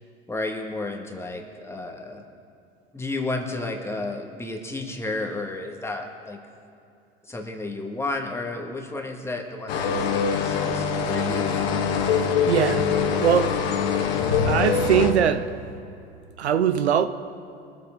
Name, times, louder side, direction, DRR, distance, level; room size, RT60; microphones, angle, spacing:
voice 1, 0.3-2.2 2.9-6.4 7.2-11.9, left 2 dB, 10° left, 2 dB, 1.8 m, -32 dB
sound 1, 9.7-15.1, left 6 dB, 60° left, 1.6 m, -23 dB
voice 2, 12.5-12.9 13.2-13.6 14.4-15.5 16.4-17.1, right 8 dB, 85° right, 11 dB, 0.6 m, -21 dB
22.5 x 7.6 x 3.8 m, 2.5 s
hypercardioid pair, 85°, 32 cm